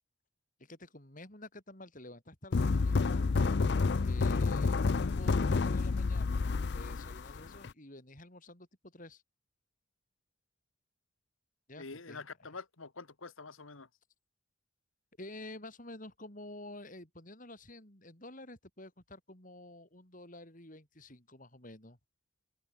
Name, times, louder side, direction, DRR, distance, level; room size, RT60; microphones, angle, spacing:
voice 1, 0.6-3.2 4.0-9.2 11.7-12.2 15.2-22.0, left 1 dB, 40° left, 5.9 m, -50 dB
sound 1, 2.5-7.7, left 4 dB, 55° left, 0.5 m, -29 dB
voice 2, 11.8-13.9, left 4 dB, 90° left, 1.8 m, -46 dB
open air
head